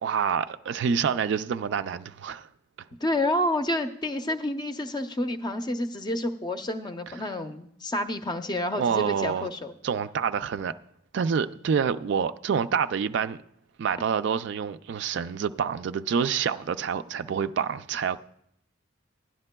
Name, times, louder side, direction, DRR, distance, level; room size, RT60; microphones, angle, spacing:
voice 1, 0.0-2.5 8.8-9.5 9.8-10.8 11.1-13.4 13.8-18.2, right 6 dB, 65° right, 0.3 m, -27 dB
voice 2, 3.0-9.7, left 1 dB, 25° left, 0.6 m, -29 dB
16.5 x 10.5 x 2.2 m
head